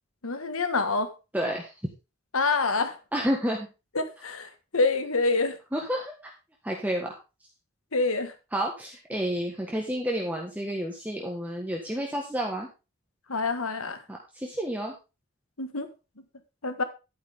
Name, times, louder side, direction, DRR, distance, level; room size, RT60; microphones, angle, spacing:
voice 1, 0.2-1.1 2.3-3.0 4.0-5.6 7.9-8.3 13.3-14.0 15.6-15.9 16.6-16.8, left 3 dB, 75° left, 1.6 m, -26 dB
voice 2, 1.3-1.7 3.1-3.7 5.7-6.1 6.6-7.1 8.5-12.7 14.4-14.9, equal, 5° right, 1.4 m, -30 dB
11.5 x 9.5 x 3.6 m
head